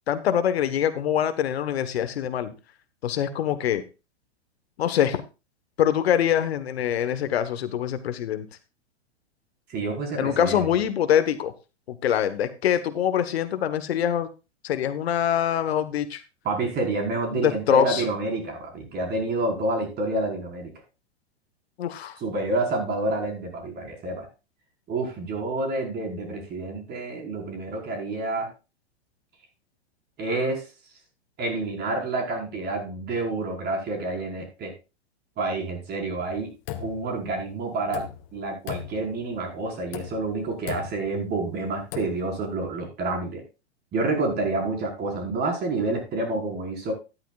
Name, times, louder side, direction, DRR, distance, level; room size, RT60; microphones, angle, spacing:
voice 1, 0.1-2.5 3.0-3.8 4.8-5.2 5.8-8.4 10.2-11.5 11.9-14.3 14.6-16.2 17.3-18.0 21.8-22.2, left 9 dB, 70° left, 12 dB, 1.3 m, -24 dB
voice 2, 9.7-10.6 16.4-20.7 22.2-24.3 24.9-28.5 30.2-30.6 31.4-34.7 35.4-36.5 36.8-43.4 43.9-46.9, right 2 dB, 30° right, 2 dB, 4.9 m, -28 dB
sound 1, 36.2-37.4 37.8-38.4 38.7-39.4 39.8-40.4 40.7-41.2 41.8-42.3, left 11 dB, 45° left, 1.5 m, -37 dB
13.0 x 11.5 x 2.4 m, 0.29 s
hypercardioid pair, 110°, 32 cm